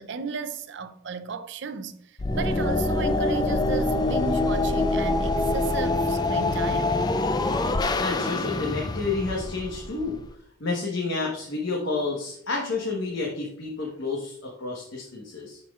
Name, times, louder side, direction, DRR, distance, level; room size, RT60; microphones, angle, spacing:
voice 1, 0.0-6.9, right 4 dB, 55° right, 0.5 m, -34 dB
sound 1, 2.2-10.3, left 2 dB, 20° left, 0.3 m, -25 dB
voice 2, 8.0-10.2 10.6-15.6, left 3 dB, 60° left, 1.1 m, -30 dB
11.5 x 4.3 x 2.3 m
head